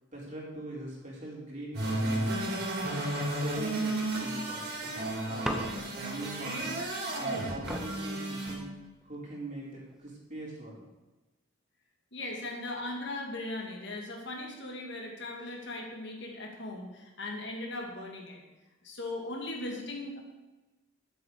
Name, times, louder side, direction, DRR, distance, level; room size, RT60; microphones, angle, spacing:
voice 1, 0.1-2.7 3.1-6.8 7.1-8.7 9.0-10.8, right 1 dB, 40° right, -4 dB, 4.2 m, -42 dB
sound 1, 1.7-8.5, right 1 dB, 60° right, 3.9 m, -33 dB
sound 2, 5.4-6.2 7.3-7.4 7.7-9.2 9.9-10.3, equal, 5° right, 1.0 m, -39 dB
voice 2, 12.1-18.4 18.8-20.2, left 2 dB, 65° left, 0 dB, 2.4 m, -38 dB
11.0 x 8.0 x 6.7 m, 1.1 s
head